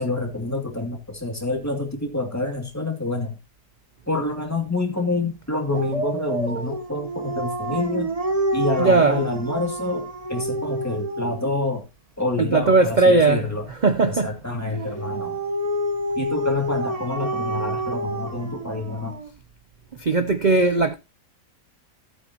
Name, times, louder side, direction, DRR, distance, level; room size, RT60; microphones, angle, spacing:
voice 1, 0.0-3.4 4.1-8.1 8.5-11.9 12.2-13.7 14.0-15.4 16.2-19.2, left 2 dB, 10° left, 2.4 m, -27 dB
Dog, 5.7-11.5 14.7-19.3, right 1 dB, 25° right, 1.2 m, -28 dB
voice 2, 8.8-9.2 12.4-13.4 13.8-14.3 20.0-20.9, right 3 dB, 50° right, 0.5 m, -18 dB
14.5 x 8.4 x 2.9 m
omnidirectional pair, 1.7 m